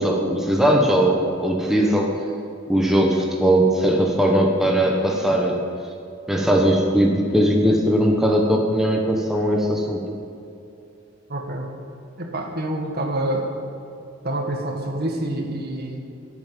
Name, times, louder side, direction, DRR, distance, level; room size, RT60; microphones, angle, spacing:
voice 1, 0.0-2.1 2.7-5.6 6.3-10.0, equal, ahead, -1 dB, 1.3 m, -19 dB
voice 2, 11.3-11.7 12.2-13.5 14.2-16.0, right 1 dB, 50° right, 2 dB, 1.9 m, -27 dB
12.0 x 9.2 x 9.3 m, 2.6 s
head